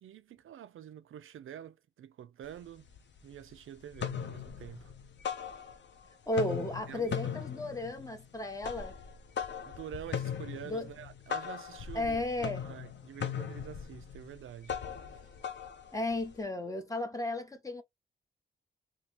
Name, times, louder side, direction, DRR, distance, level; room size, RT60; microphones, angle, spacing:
voice 1, 0.0-2.9 3.2-4.9 6.9-7.3 9.6-14.8 15.1-15.2, right 10 dB, 75° right, 0.4 m, -47 dB
sound 1, 2.5-2.6 2.9-3.5 3.8-6.0 6.3-16.4, left 8 dB, 60° left, 0.5 m, -39 dB
voice 2, 6.3-8.9 10.7-10.9 11.9-12.7 15.9-17.8, left 1 dB, 15° left, 0.7 m, -34 dB
2.8 x 2.7 x 3.3 m
wide cardioid pair, 140°, 21 cm